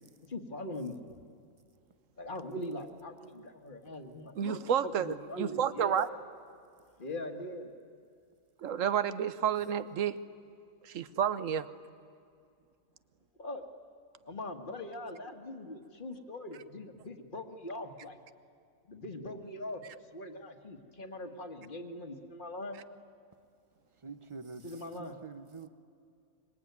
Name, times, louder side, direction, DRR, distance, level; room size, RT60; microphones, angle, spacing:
voice 1, 0.2-1.2 2.2-6.2 7.0-7.7 13.4-13.7 14.2-18.2 18.9-19.8 20.1-22.8 24.6-25.2, left 1 dB, 35° left, 6 dB, 1.9 m, -41 dB
voice 2, 4.4-5.1 5.4-6.1 8.6-10.2 10.8-11.7, right 8 dB, 65° right, 14 dB, 1.2 m, -30 dB
voice 3, 24.0-25.7, right 4 dB, 25° right, 11 dB, 0.7 m, -46 dB
26.0 x 23.0 x 9.5 m, 2.4 s
omnidirectional pair, 1.5 m